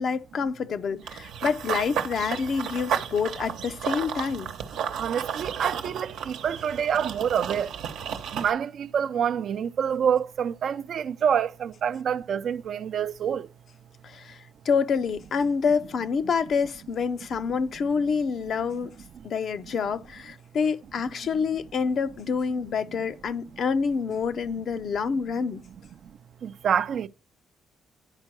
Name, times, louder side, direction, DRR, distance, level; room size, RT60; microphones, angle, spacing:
voice 1, 0.0-4.5 14.0-14.4 14.6-18.9 19.2-25.6, left 5 dB, 60° left, 0.6 m, -27 dB
Run / Bird vocalization bird call bird song, 1.1-8.5, right 8 dB, 85° right, 0.9 m, -33 dB
voice 2, 4.9-7.7 8.3-13.5 26.4-27.1, right 8 dB, 60° right, 0.5 m, -27 dB
10.5 x 4.4 x 6.1 m
cardioid pair, 90°, 0 cm